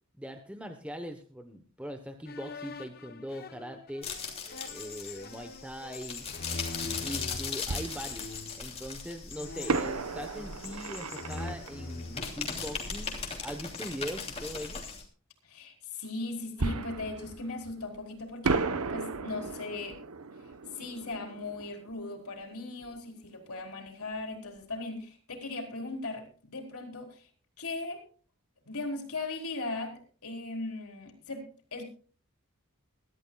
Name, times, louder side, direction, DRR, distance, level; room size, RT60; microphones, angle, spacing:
voice 1, 0.2-4.1 4.7-6.3 6.8-8.3 8.6-14.8, equal, 5° right, 6 dB, 0.9 m, -41 dB
sound 1, 2.3-7.5 8.2-8.7 9.3-10.8 11.1-13.1, left 2 dB, 45° left, 1.0 m, -43 dB
sound 2, 4.0-15.0, left 5 dB, 25° left, 2.9 m, -39 dB
Fireworks, 7.7-8.8 9.7-13.1 16.6-18.0 18.4-23.0 23.2-23.3 23.9-24.1, right 3 dB, 85° right, 1.0 m, -35 dB
voice 2, 15.4-18.6 18.9-20.0 20.8-27.3 27.6-28.0 28.7-31.8, left 2 dB, 85° left, 3 dB, 4.1 m, -38 dB
22.5 x 13.0 x 2.3 m, 0.40 s
head